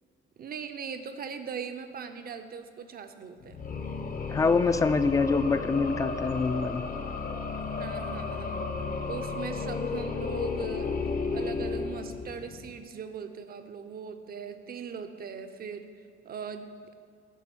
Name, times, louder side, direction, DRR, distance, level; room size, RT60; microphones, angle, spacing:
voice 1, 0.4-3.6 7.8-8.7 9.0-10.9 11.3-15.9 16.2-16.7, right 6 dB, 50° right, 9 dB, 0.6 m, -40 dB
sound 1, 3.4-12.7, left 2 dB, 85° left, 0.9 m, -49 dB
sound 2, 3.5-12.6, left 4 dB, 45° left, 0.7 m, -33 dB
voice 2, 4.3-6.8, left 4 dB, 15° left, 11 dB, 0.3 m, -25 dB
10.0 x 3.5 x 6.1 m, 2.2 s
cardioid pair, 90°, 20 cm